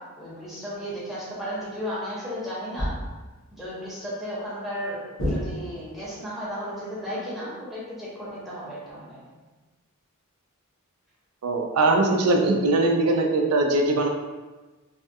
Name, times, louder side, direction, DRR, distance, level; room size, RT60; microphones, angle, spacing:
voice 1, 0.2-2.9 3.5-9.2, equal, ahead, -9 dB, 0.8 m, -34 dB
sound 1, 2.8-3.4 5.2-6.0, equal, 60° left, 0.9 m, -29 dB
voice 2, 11.4-14.1, right 2 dB, 85° right, 2 dB, 0.4 m, -21 dB
3.3 x 2.2 x 2.7 m, 1.2 s
head